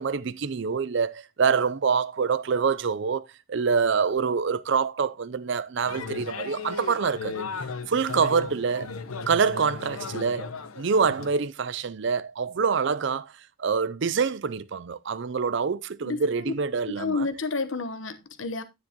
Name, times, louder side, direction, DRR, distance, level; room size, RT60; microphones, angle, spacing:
voice 1, 0.0-7.4 7.9-8.9 9.3-13.3 13.6-17.2, right 5 dB, 55° right, 0.5 m, -26 dB
sound 1, 5.9-11.3, left 4 dB, 85° left, 1.0 m, -36 dB
voice 2, 16.0-16.5 16.9-18.6, left 3 dB, 65° left, 1.0 m, -30 dB
9.6 x 9.5 x 2.9 m
head